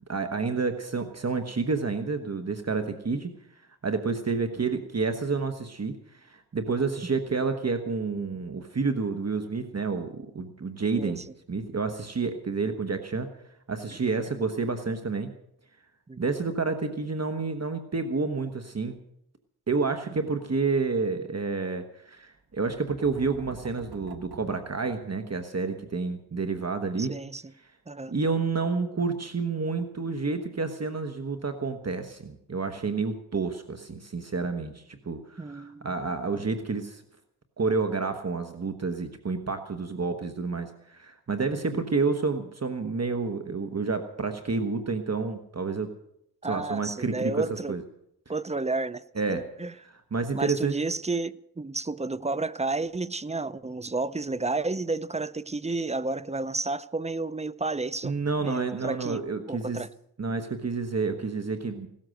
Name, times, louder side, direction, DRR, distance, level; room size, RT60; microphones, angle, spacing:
voice 1, 0.1-11.2 11.5-13.3 13.7-15.3 16.2-19.0 19.7-27.1 28.1-37.0 37.6-45.9 46.4-47.8 49.2-49.4 50.1-50.8 58.0-59.8 60.2-61.9, right 4 dB, 45° right, 1.2 m, -29 dB
sound 1, 22.5-25.4, right 4 dB, 80° right, 1.5 m, -48 dB
voice 2, 27.0-27.5 27.9-28.1 35.4-35.9 41.7-41.8 46.4-47.8 48.3-49.0 49.3-49.7 50.3-58.1 58.4-59.9, right 3 dB, 20° right, 0.6 m, -31 dB
17.0 x 13.0 x 6.5 m
wide cardioid pair, 75°, 37 cm